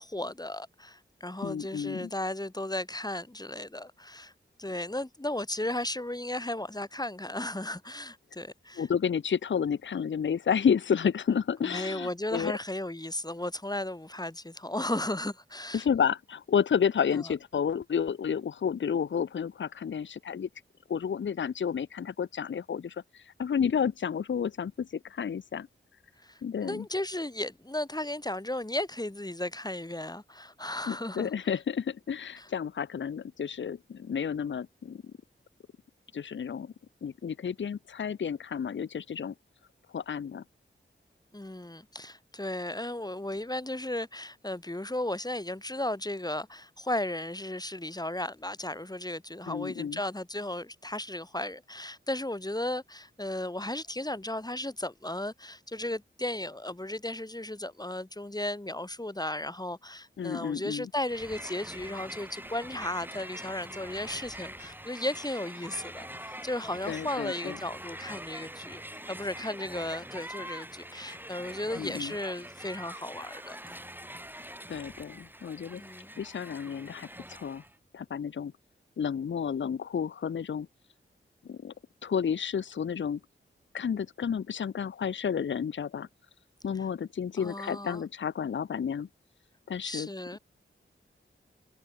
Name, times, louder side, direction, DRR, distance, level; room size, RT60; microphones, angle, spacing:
voice 1, 0.0-4.3 4.6-8.9 11.6-15.9 17.1-17.2 26.2-31.3 32.4-32.5 41.3-68.8 69.1-73.6 75.8-76.1 87.4-88.0 89.8-90.4, left 1 dB, 20° left, 6.1 m, -35 dB
voice 2, 1.4-2.1 8.8-12.6 15.7-20.5 20.9-25.7 26.4-26.9 30.9-35.1 36.1-36.7 37.0-39.3 39.9-40.4 49.5-50.0 60.2-60.9 66.9-67.6 71.8-72.1 74.7-75.8 76.2-77.6 77.9-78.5 79.0-80.7 81.4-81.7 82.0-83.2 83.7-86.1 86.6-89.1 89.7-90.4, left 7 dB, 65° left, 0.6 m, -31 dB
Crowd, 61.0-77.7, right 1 dB, 10° right, 4.7 m, -44 dB
wide cardioid pair, 60°, 21 cm